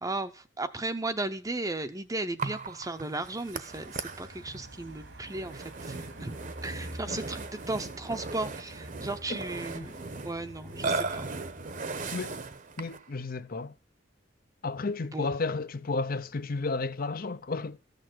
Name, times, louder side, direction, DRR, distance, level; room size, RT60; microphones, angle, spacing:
voice 1, 0.0-6.3 6.6-9.9 10.2-11.3 15.1-15.3, right 2 dB, 20° right, 0.7 m, -35 dB
Burping eructation, 2.4-13.1, right 3 dB, 45° right, 0.9 m, -38 dB
Car passing by / Traffic noise roadway noise / Engine, 3.7-11.8, right 1 dB, 90° right, 2.4 m, -47 dB
voice 2, 12.8-13.7 14.6-17.8, left 3 dB, 50° left, 0.7 m, -32 dB
14.0 x 6.7 x 7.9 m
head